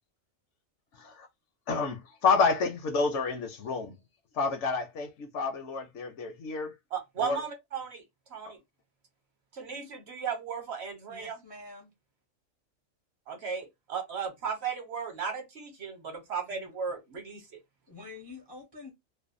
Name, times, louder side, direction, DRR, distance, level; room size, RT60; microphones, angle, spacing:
voice 1, 0.9-1.3 1.7-3.9 4.3-6.7 7.2-7.4 8.5-8.6, left 4 dB, 70° left, 0.8 m, -29 dB
voice 2, 6.9-8.0 8.3-8.6 9.5-11.4 13.3-17.6, right 6 dB, 60° right, 1.0 m, -36 dB
voice 3, 11.1-11.9 16.5-16.7 17.9-18.9, left 3 dB, 30° left, 0.4 m, -47 dB
2.5 x 2.2 x 2.5 m
omnidirectional pair, 1.4 m